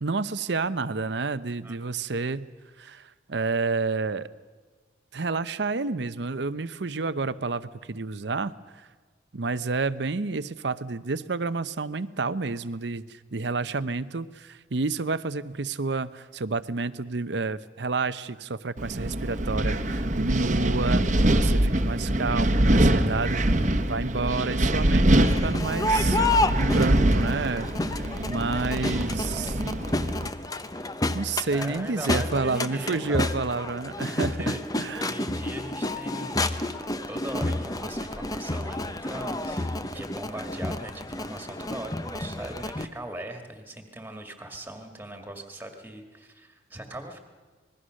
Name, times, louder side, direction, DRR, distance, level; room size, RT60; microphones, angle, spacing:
voice 1, 0.0-2.5 2.8-4.3 5.1-8.5 9.3-23.4 23.9-26.2 26.6-29.6 31.1-35.1, right 3 dB, 65° right, 15 dB, 0.7 m, -30 dB
Wind, 18.8-30.3, right 1 dB, 40° right, 1.1 m, -24 dB
Crowd, 25.1-42.8, left 2 dB, 20° left, 0.7 m, -30 dB
voice 2, 31.5-33.3 34.4-34.6 34.9-47.2, right 1 dB, 10° right, 5 dB, 2.0 m, -39 dB
26.0 x 20.5 x 6.4 m, 1.4 s
head